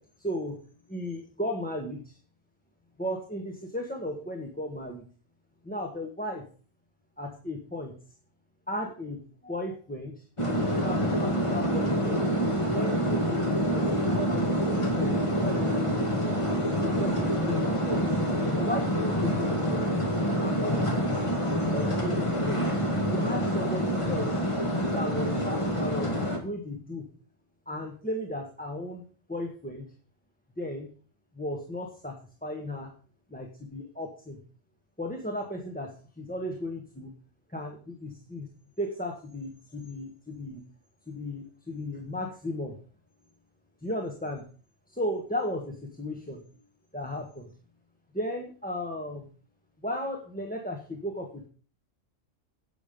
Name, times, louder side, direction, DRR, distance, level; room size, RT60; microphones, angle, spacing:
voice 1, 0.2-0.6 0.9-2.2 3.0-5.0 5.6-6.4 7.2-7.9 8.7-10.2 10.8-12.2 12.7-16.5 16.8-18.0 18.6-20.0 20.4-21.3 21.7-22.6 23.0-24.4 24.9-26.1 26.4-27.1 27.7-29.0 29.3-29.9 30.6-30.9 31.3-32.9 33.3-34.4 35.0-37.1 37.5-38.5 38.8-40.6 41.1-42.8 43.8-44.4 44.9-46.4 46.9-47.5 48.1-49.3 49.8-51.5, left 1 dB, 5° left, 1 dB, 1.2 m, -35 dB
sound 1, 10.4-26.4, equal, 25° left, 2.1 m, -27 dB
11.0 x 8.3 x 5.2 m, 0.42 s
omnidirectional pair, 1.3 m